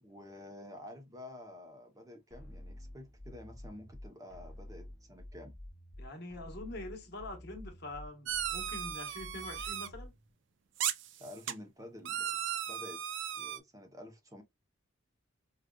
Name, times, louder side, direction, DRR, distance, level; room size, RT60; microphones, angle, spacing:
voice 1, 0.0-5.5 11.2-12.4 12.7-13.0 13.3-14.4, left 1 dB, 15° right, 0.6 m, -50 dB
sound 1, 2.3-10.3, left 1 dB, 5° left, 0.9 m, -50 dB
voice 2, 6.0-10.1, left 2 dB, 55° left, 1.1 m, -45 dB
sound 2, 8.3-9.9 10.8-11.5 12.0-13.6, right 10 dB, 60° right, 0.4 m, -36 dB
5.0 x 2.4 x 2.2 m
head